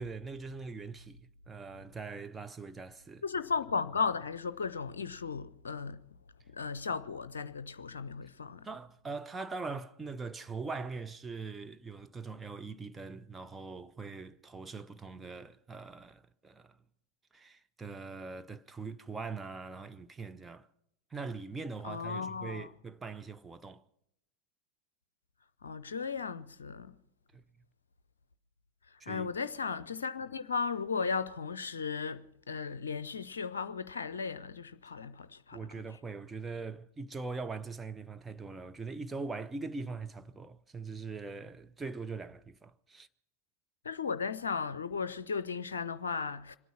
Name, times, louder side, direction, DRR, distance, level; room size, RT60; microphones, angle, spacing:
voice 1, 0.0-3.2 8.6-16.8 17.3-20.7 21.1-23.8 27.3-27.4 29.0-29.3 35.5-43.1, right 4 dB, 10° right, 0.6 m, -42 dB
voice 2, 3.2-6.1 6.5-8.7 21.8-22.7 25.6-26.9 29.1-35.6 43.8-46.6, left 5 dB, 70° left, 0.5 m, -36 dB
25.0 x 9.2 x 5.8 m
figure-of-eight pair, 90°, 0 cm